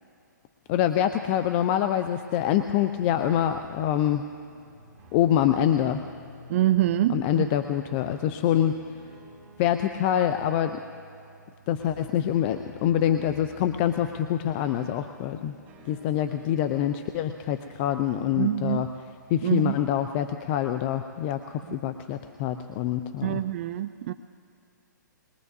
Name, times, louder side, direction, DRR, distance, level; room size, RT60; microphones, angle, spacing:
sound 1, 0.6-19.8, left 1 dB, 15° right, 4.4 m, -52 dB
voice 1, 0.7-4.3 5.1-6.0 7.1-8.8 9.6-10.8 11.7-15.5 15.9-18.9 19.3-23.4, left 10 dB, 30° left, 8 dB, 0.5 m, -25 dB
voice 2, 6.5-7.4 18.4-18.8 19.4-19.8 21.7-21.8 23.2-24.1, right 13 dB, 40° right, 11 dB, 0.4 m, -25 dB
21.5 x 20.5 x 2.7 m, 2.5 s
hypercardioid pair, 135°, 10 cm